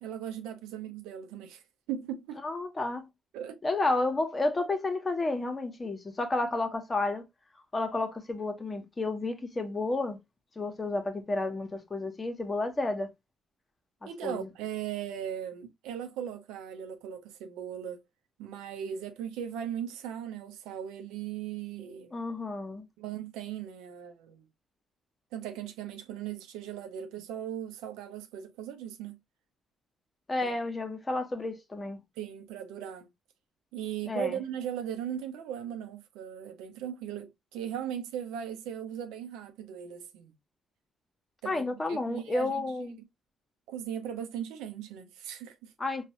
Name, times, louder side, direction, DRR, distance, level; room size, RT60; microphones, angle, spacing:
voice 1, 0.0-1.6 1.9-2.4 3.3-3.6 14.1-18.0 18.4-22.1 23.0-24.5 25.3-29.2 30.4-30.5 32.2-33.1 33.7-40.3 41.4-42.5 43.7-45.7, right 9 dB, 70° right, 0.7 m, -38 dB
voice 2, 2.4-3.1 3.6-7.2 7.7-10.2 10.6-13.1 14.0-14.5 22.1-22.8 30.3-32.0 34.1-34.4 41.4-43.0 45.8-46.1, left 2 dB, 30° left, 1.1 m, -31 dB
5.2 x 2.4 x 2.9 m
figure-of-eight pair, 40°, 0 cm